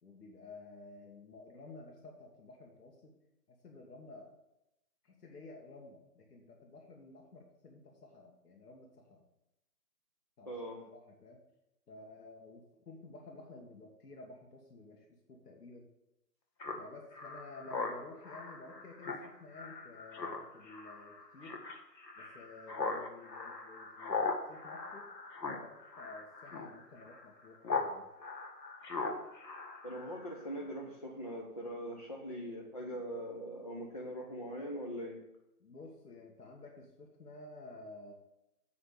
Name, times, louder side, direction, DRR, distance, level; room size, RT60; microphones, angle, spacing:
voice 1, 0.0-3.1 3.6-4.3 5.0-9.2 10.4-10.5 10.9-11.4 11.9-15.9 16.8-21.6 22.2-25.2 25.6-28.1 35.6-38.1, left 2 dB, 70° left, 0 dB, 1.8 m, -52 dB
voice 2, 10.5-10.8 29.8-35.2, equal, 25° left, -2 dB, 0.6 m, -41 dB
Speech synthesizer, 16.6-27.9 28.2-30.4, left 4 dB, 90° left, 1.9 m, -40 dB
7.6 x 5.8 x 6.8 m, 0.89 s
hypercardioid pair, 160°, 49 cm